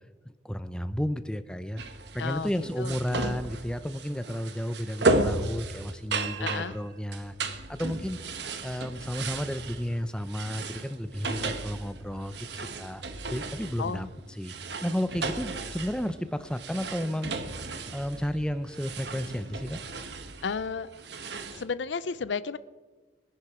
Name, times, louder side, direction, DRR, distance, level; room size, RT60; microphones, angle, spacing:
voice 1, 0.2-1.8 2.1-7.4 7.7-8.2 8.6-13.0 13.3-14.6 14.8-17.3 17.9-19.8, equal, 5° left, 11 dB, 0.6 m, -32 dB
sound 1, 1.8-21.6, right 3 dB, 65° right, 1.1 m, -34 dB
voice 2, 2.2-2.5 2.8-3.0 6.4-6.7 13.8-14.1 20.4-20.9 21.2-22.6, left 5 dB, 75° left, 16 dB, 0.5 m, -33 dB
22.0 x 10.5 x 4.9 m, 1.3 s
head